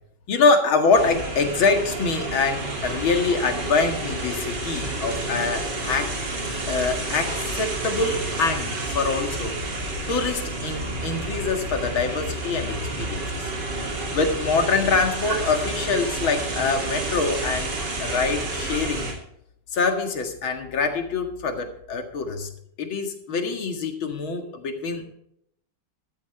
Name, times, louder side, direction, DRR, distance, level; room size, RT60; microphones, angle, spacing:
voice 1, 0.3-6.2 6.7-9.6 10.1-13.5 14.1-19.1 19.7-22.5 22.8-25.1, left 4 dB, 90° left, 5 dB, 2.7 m, -24 dB
sound 1, 0.9-19.1, right 2 dB, 60° right, 3.5 m, -30 dB
13.5 x 13.0 x 3.4 m, 0.72 s
omnidirectional pair, 2.1 m